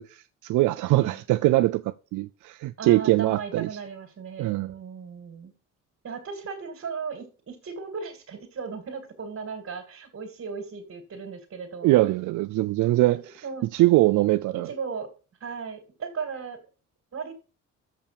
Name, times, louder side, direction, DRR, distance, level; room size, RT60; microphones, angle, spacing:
voice 1, 0.0-3.7 4.4-4.7 11.8-13.4 13.7-14.7, right 18 dB, 80° right, 0.5 m, -22 dB
voice 2, 0.9-1.2 2.8-5.5 6.0-12.0 13.1-13.7 14.5-15.1 15.4-16.6 17.1-17.3, right 5 dB, 50° right, 2.4 m, -36 dB
7.0 x 5.5 x 6.9 m
cardioid pair, 90°, 30 cm